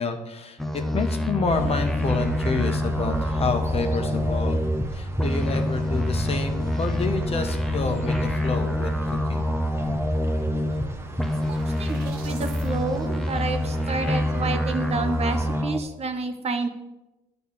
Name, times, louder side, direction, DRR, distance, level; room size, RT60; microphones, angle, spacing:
voice 1, 0.0-4.6 4.9-8.9 9.3-9.5, left 4 dB, 35° left, 5 dB, 1.2 m, -29 dB
sound 1, 0.6-4.9 5.2-10.9 11.2-15.8, left 1 dB, ahead, 0.8 m, -26 dB
sound 2, 1.4-15.6, right 1 dB, 15° right, 1.1 m, -35 dB
sound 3, 10.2-12.7, right 5 dB, 70° right, 1.7 m, -48 dB
voice 2, 11.8-16.7, right 4 dB, 40° right, 7 dB, 1.0 m, -29 dB
10.5 x 4.2 x 7.1 m, 0.97 s
cardioid pair, 110°, 17 cm